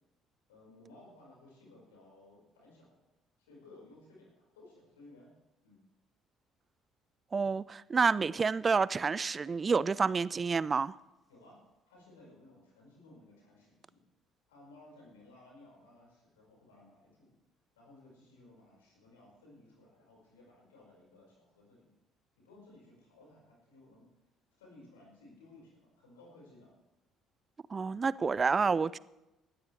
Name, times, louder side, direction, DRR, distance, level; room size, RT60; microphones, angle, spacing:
voice 1, 0.5-3.0 3.4-5.3 5.6-5.8 11.3-11.6 11.9-14.0 14.5-17.3 17.8-21.9 22.4-24.1 24.5-26.7, left 2 dB, 80° left, 5.3 m, -58 dB
voice 2, 7.3-10.9 27.7-29.0, right 5 dB, 35° right, 0.4 m, -29 dB
19.0 x 13.5 x 3.4 m
figure-of-eight pair, 50°, 0 cm